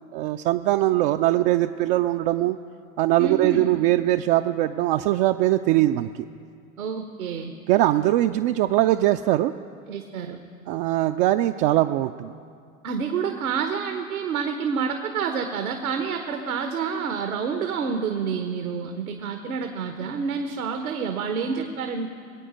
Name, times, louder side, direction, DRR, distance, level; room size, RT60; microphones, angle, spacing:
voice 1, 0.1-2.6 3.0-6.1 7.7-9.5 10.7-12.3, right 15 dB, 45° right, 7 dB, 0.4 m, -21 dB
voice 2, 3.2-3.7 6.8-7.5 9.9-10.4 12.8-22.1, right 6 dB, 80° right, 6 dB, 1.1 m, -28 dB
22.5 x 8.6 x 5.1 m, 2.3 s
hypercardioid pair, 90°, 42 cm